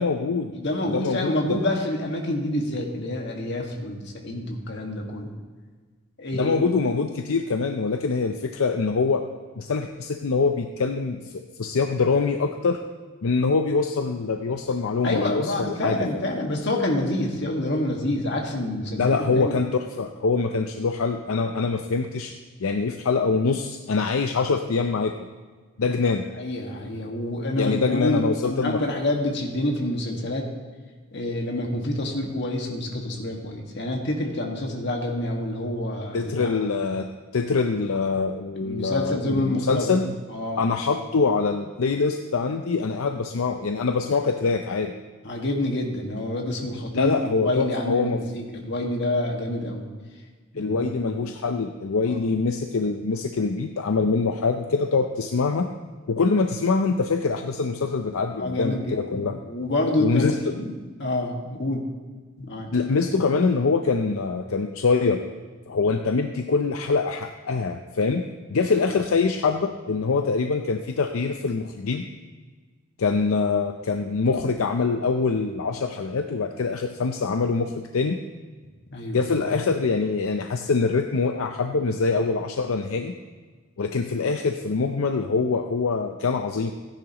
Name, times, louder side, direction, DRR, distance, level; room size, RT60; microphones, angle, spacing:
voice 1, 0.0-0.6 0.9-1.6 6.3-9.2 9.6-12.8 13.2-16.2 19.0-22.3 22.6-25.1 25.8-26.3 27.6-28.9 36.1-37.1 37.3-40.2 40.6-44.9 46.9-48.2 50.6-55.7 56.1-59.4 60.0-60.5 62.7-65.2 65.7-72.1 73.0-78.2 79.1-83.1 83.8-86.7, left 4 dB, 75° left, 5 dB, 0.5 m, -24 dB
voice 2, 0.5-5.3 6.2-6.6 15.0-19.6 26.4-30.5 31.1-36.5 38.6-39.9 40.3-40.6 45.2-49.9 50.5-50.9 52.0-52.2 58.3-59.0 59.4-61.9 62.4-62.7 78.9-79.2, left 1 dB, 55° left, 0 dB, 1.8 m, -27 dB
15.5 x 10.0 x 3.0 m, 1.4 s
head